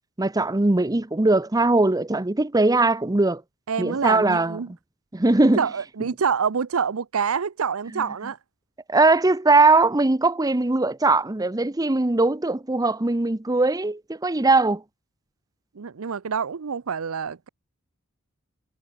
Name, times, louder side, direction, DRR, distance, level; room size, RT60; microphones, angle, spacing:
voice 1, 0.2-3.4 3.8-4.6 5.1-5.6 8.0-8.1 8.9-14.8, right 2 dB, 15° right, 0.7 m, -20 dB
voice 2, 3.7-4.7 5.6-8.4 15.7-17.5, right 6 dB, 70° right, 0.6 m, -26 dB
head